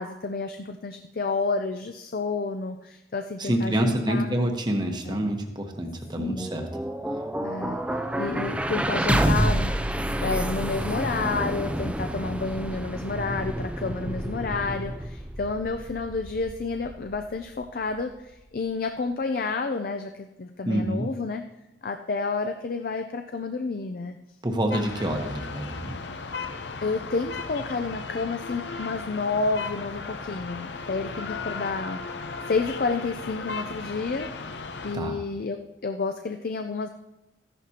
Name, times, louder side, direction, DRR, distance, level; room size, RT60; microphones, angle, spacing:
voice 1, 0.0-4.5 5.1-5.3 6.2-6.5 7.4-7.8 8.2-21.4 21.8-24.2 26.8-32.0 32.5-34.3 34.8-36.9, left 4 dB, 55° left, 6 dB, 0.5 m, -30 dB
voice 2, 3.4-6.7 20.6-21.1 24.4-26.0 34.9-35.2, right 1 dB, 25° right, 3 dB, 1.1 m, -27 dB
sound 1, 6.1-18.2, right 1 dB, 5° right, 0.4 m, -29 dB
sound 2, 24.7-35.0, left 4 dB, 85° left, 0.7 m, -36 dB
14.0 x 11.0 x 2.9 m, 0.94 s
head